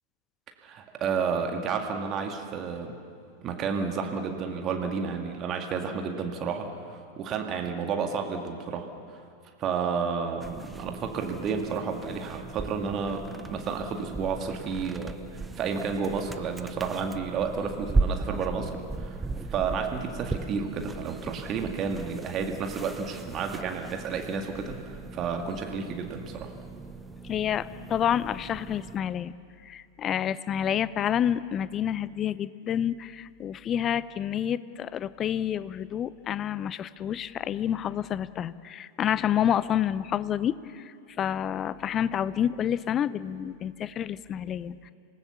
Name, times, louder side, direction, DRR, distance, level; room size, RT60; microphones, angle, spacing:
voice 1, 0.6-3.0 3.4-9.2 9.6-19.2 19.5-26.5, right 5 dB, 30° right, 4 dB, 2.0 m, -31 dB
sound 1, 10.4-29.0, right 3 dB, 10° right, 0.7 m, -36 dB
voice 2, 27.2-29.3 29.6-44.9, left 10 dB, 30° left, 18 dB, 0.6 m, -29 dB
26.5 x 19.0 x 7.1 m, 2.3 s
figure-of-eight pair, 90°, 0 cm